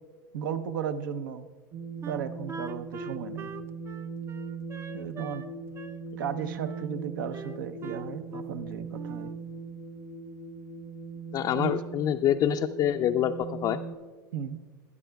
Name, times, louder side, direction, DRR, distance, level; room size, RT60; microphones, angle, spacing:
voice 1, 0.3-1.5 2.1-3.5 4.9-5.5 6.2-9.3 11.5-11.8 14.3-14.6, right 7 dB, 75° right, 10 dB, 0.8 m, -35 dB
sound 1, 1.7-13.9, right 4 dB, 55° right, 3.5 m, -40 dB
Wind instrument woodwind instrument, 2.0-5.5 5.7-6.9 7.3-8.6 8.9-9.4, right 5 dB, 25° right, 0.5 m, -43 dB
voice 2, 11.3-13.8, left 10 dB, 35° left, 5 dB, 0.4 m, -26 dB
21.5 x 11.0 x 2.3 m, 1.5 s
hypercardioid pair, 100°, 11 cm